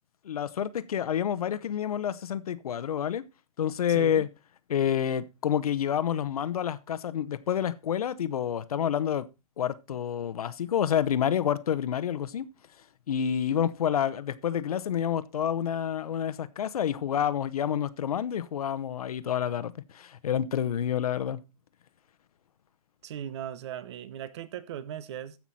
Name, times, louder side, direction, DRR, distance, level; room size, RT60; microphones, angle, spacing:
voice 1, 0.2-3.2 3.6-4.3 4.7-9.3 9.6-12.5 13.1-21.4, left 9 dB, 65° left, 1.0 m, -28 dB
voice 2, 3.9-4.2 23.0-25.4, right 10 dB, 45° right, 1.1 m, -38 dB
15.0 x 6.0 x 4.2 m
hypercardioid pair, 145°, 20 cm